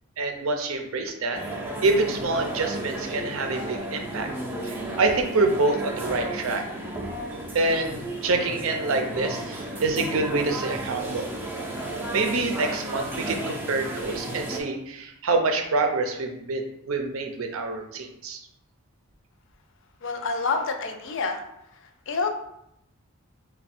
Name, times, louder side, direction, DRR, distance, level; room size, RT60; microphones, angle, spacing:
voice 1, 0.2-1.4 1.8-4.3 4.6-6.7 7.5-11.3 12.1-18.4, right 3 dB, 65° right, 4 dB, 0.5 m, -26 dB
sound 1, 1.3-14.6, right 1 dB, 10° right, 0.5 m, -33 dB
voice 2, 20.0-21.4 21.7-22.3, left 4 dB, 60° left, 5 dB, 0.4 m, -28 dB
3.4 x 2.2 x 4.1 m, 0.80 s
head